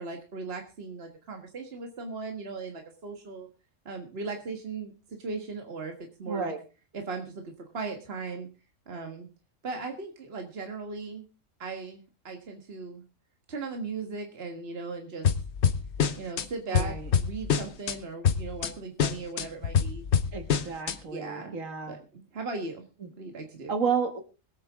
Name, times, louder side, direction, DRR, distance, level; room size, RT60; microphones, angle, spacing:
voice 1, 0.0-3.5 3.9-6.5 6.9-8.5 8.9-9.3 9.6-11.3 11.6-13.0 13.5-15.3 16.2-20.0 21.1-21.6 21.9-22.8 23.2-23.7, right 4 dB, 50° right, 4 dB, 1.9 m, -38 dB
voice 2, 6.3-6.6 16.7-17.1 20.3-22.0 23.0-23.1 23.7-24.2, right 6 dB, 90° right, 5 dB, 2.0 m, -31 dB
sound 1, 15.2-16.5 16.7-18.0 18.2-18.7 19.0-21.0, left 7 dB, 60° left, 1.2 m, -25 dB
22.0 x 8.8 x 3.6 m, 0.32 s
omnidirectional pair, 1.3 m